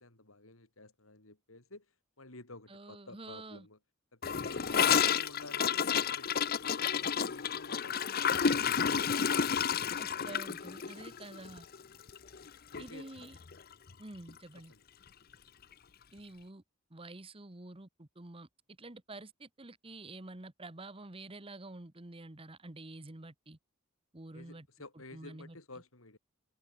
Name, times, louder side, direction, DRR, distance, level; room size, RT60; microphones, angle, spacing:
voice 1, 0.0-3.8 4.1-9.9 11.0-11.3 12.7-13.2 13.9-14.0 14.7-14.8 24.3-26.2, left 2 dB, 90° left, 4.3 m, -52 dB
voice 2, 2.7-3.7 4.7-5.0 10.0-11.7 12.8-13.4 14.0-14.7 16.1-16.6 16.9-18.5 18.8-23.6 24.1-24.7 25.1-25.6, right 2 dB, 25° right, 1.3 m, -48 dB
Gurgling / Toilet flush, 4.2-12.5 12.7-12.9 13.2-13.6 13.9-14.0 14.3-14.4 15.3-15.4, left 7 dB, 45° left, 0.7 m, -31 dB
head